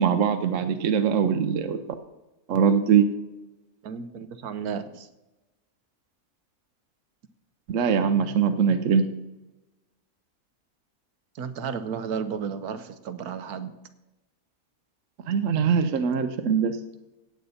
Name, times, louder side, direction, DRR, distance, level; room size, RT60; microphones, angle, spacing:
voice 1, 0.0-1.8 2.5-3.1 7.7-9.1 15.3-16.8, right 7 dB, 60° right, 8 dB, 1.0 m, -22 dB
voice 2, 3.8-5.1 11.3-13.7, right 6 dB, 80° right, 11 dB, 1.4 m, -33 dB
16.5 x 8.2 x 4.2 m, 1.0 s
omnidirectional pair, 1.6 m